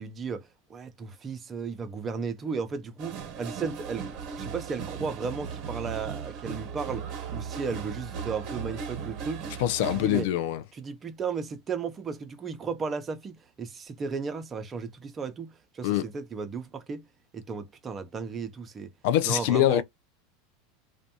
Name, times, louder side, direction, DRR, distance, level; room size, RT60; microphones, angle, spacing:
voice 1, 0.0-4.1 4.3-9.5 9.9-10.3 10.8-15.5 15.7-17.1 17.3-18.9 19.2-19.8, right 5 dB, 30° right, 0.6 m, -35 dB
sound 1, 3.0-10.2, right 6 dB, 50° right, 1.0 m, -37 dB
voice 2, 9.6-10.6 15.8-16.1 19.0-19.8, left 13 dB, 65° left, 0.4 m, -24 dB
2.5 x 2.2 x 2.7 m
hypercardioid pair, 95°, 0 cm